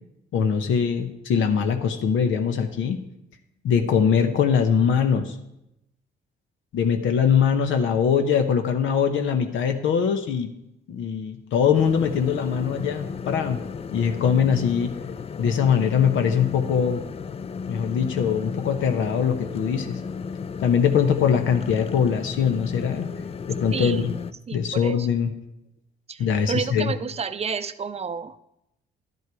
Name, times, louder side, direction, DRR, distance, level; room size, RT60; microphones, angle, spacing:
voice 1, 0.3-3.0 3.6-5.3 6.7-10.5 10.9-13.6 13.9-14.9 15.4-17.0 17.7-20.0 20.6-23.1 23.5-24.1 24.5-25.3 26.2-26.9, left 7 dB, 80° left, 6 dB, 0.9 m, -22 dB
sound 1, 11.7-24.3, left 5 dB, 30° left, 0.4 m, -34 dB
voice 2, 23.7-24.0 24.5-25.1 26.1-28.4, right 6 dB, 30° right, 12 dB, 0.5 m, -30 dB
11.0 x 7.9 x 4.7 m, 0.83 s
cardioid pair, 90°, 20 cm